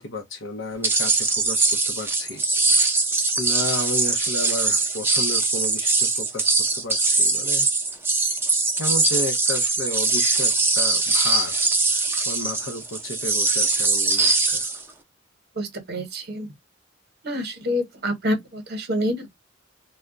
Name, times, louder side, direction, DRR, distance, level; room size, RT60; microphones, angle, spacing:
voice 1, 0.0-3.0 3.4-7.7 8.8-11.6 11.9-14.7, left 2 dB, 70° left, 0.6 m, -33 dB
sound 1, 0.8-14.8, right 3 dB, 10° right, 0.5 m, -22 dB
voice 2, 15.6-16.5 17.2-19.3, equal, 55° right, 0.8 m, -27 dB
2.2 x 2.1 x 3.6 m
head